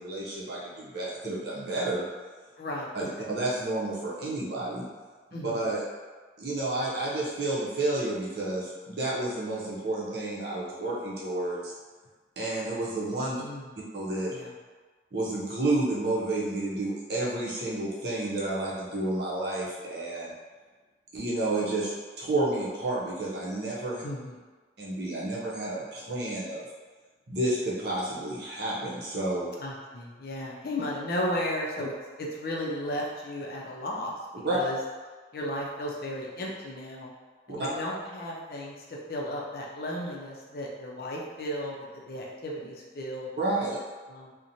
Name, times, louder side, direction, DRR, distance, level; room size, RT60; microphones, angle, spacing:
voice 1, 0.0-2.1 2.9-4.9 5.4-5.8 6.4-11.7 12.4-13.4 13.9-14.3 15.1-20.3 21.1-24.0 24.8-26.6 27.3-29.5 34.4-34.6 37.5-37.7 43.4-43.8, right 2 dB, 65° right, -6 dB, 0.7 m, -30 dB
voice 2, 2.6-2.9 5.3-5.6 13.4-13.7 14.3-14.5 24.0-24.3 29.6-31.9 32.2-34.1 34.5-34.8 35.3-37.1 37.5-38.7 39.1-43.3 44.1-44.3, left 1 dB, 55° left, -3 dB, 0.5 m, -34 dB
2.9 x 2.1 x 2.6 m, 1.4 s
head